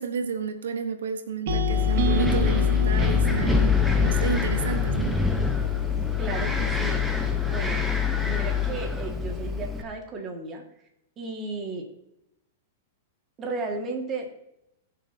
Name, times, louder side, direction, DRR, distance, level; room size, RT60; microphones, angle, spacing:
voice 1, 0.0-5.1, right 6 dB, 90° right, 8 dB, 1.1 m, -31 dB
sound 1, 1.5-8.7, left 14 dB, 65° left, 0.5 m, -25 dB
sound 2, 1.5-5.6, right 7 dB, 65° right, 1.2 m, -32 dB
Wind, 1.7-9.8, left 2 dB, ahead, 1.1 m, -28 dB
voice 2, 6.2-7.0 7.5-7.8 8.2-10.6 11.2-11.9 13.4-14.3, right 3 dB, 25° right, 1 dB, 2.0 m, -34 dB
19.5 x 6.8 x 2.8 m, 0.86 s
hypercardioid pair, 140°, 0 cm